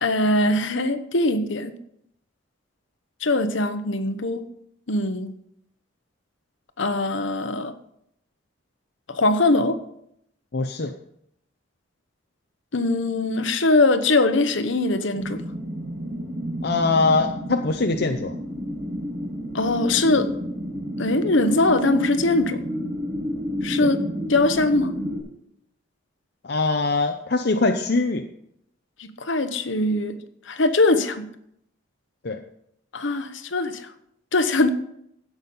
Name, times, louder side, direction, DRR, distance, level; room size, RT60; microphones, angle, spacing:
voice 1, 0.0-1.8 3.2-4.5 4.9-5.3 6.8-7.7 9.1-9.8 12.7-15.4 19.5-20.3 21.0-22.6 23.6-24.0 24.3-24.9 29.0-30.2 30.5-31.3 32.9-33.9 34.3-34.7, left 2 dB, 70° left, 1.0 m, -21 dB
voice 2, 10.5-10.9 16.6-18.3 23.8-23.9 26.4-28.3 32.2-32.4, left 3 dB, 50° left, 0.7 m, -22 dB
sound 1, 15.1-25.2, equal, 60° right, 5.8 m, -30 dB
16.0 x 6.2 x 5.5 m
head